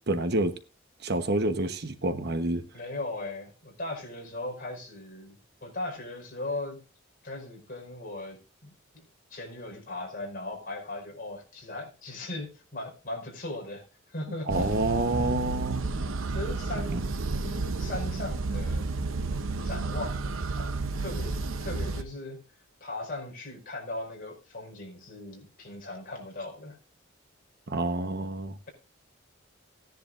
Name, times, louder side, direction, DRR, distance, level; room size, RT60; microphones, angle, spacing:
voice 1, 0.1-0.5 1.0-2.6 14.5-15.8 16.9-17.0 27.7-28.6, right 2 dB, 55° right, 1.1 m, -28 dB
voice 2, 2.7-6.8 7.2-9.0 9.3-14.7 16.3-17.0 17.4-18.9 19.6-20.7 21.0-22.4 22.8-26.8, left 2 dB, 45° left, 5.2 m, -38 dB
sound 1, 14.5-22.0, right 3 dB, 75° right, 0.8 m, -31 dB
16.5 x 10.5 x 2.6 m
head